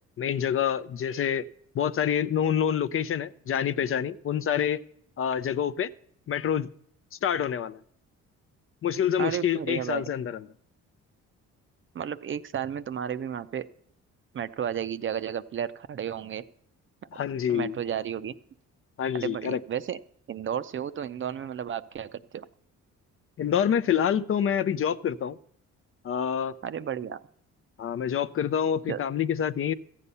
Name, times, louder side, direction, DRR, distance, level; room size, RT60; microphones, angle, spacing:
voice 1, 0.2-1.4 1.7-4.8 5.2-5.9 6.3-6.7 7.2-7.8 8.8-10.4 17.1-17.7 19.0-19.6 23.4-25.4 26.0-26.5 27.8-29.7, left 8 dB, 45° left, 0.5 m, -27 dB
voice 2, 9.2-10.1 11.9-13.7 14.3-16.4 17.1-17.2 17.5-18.3 19.1-20.0 20.3-22.5 26.6-27.2 28.9-29.0, right 9 dB, 40° right, 0.5 m, -33 dB
14.5 x 8.4 x 5.5 m
cardioid pair, 90°, 30 cm